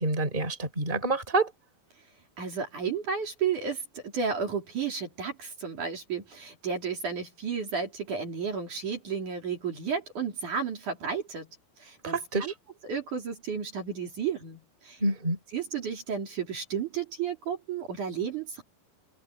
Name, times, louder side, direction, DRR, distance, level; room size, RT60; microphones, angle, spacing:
voice 1, 0.0-1.5 12.0-12.5 15.0-15.4, right 2 dB, 10° right, 4.3 m, -27 dB
voice 2, 2.4-11.5 11.8-12.5 12.8-15.0 15.5-18.6, right 6 dB, 50° right, 4.7 m, -32 dB
omnidirectional pair, 4.7 m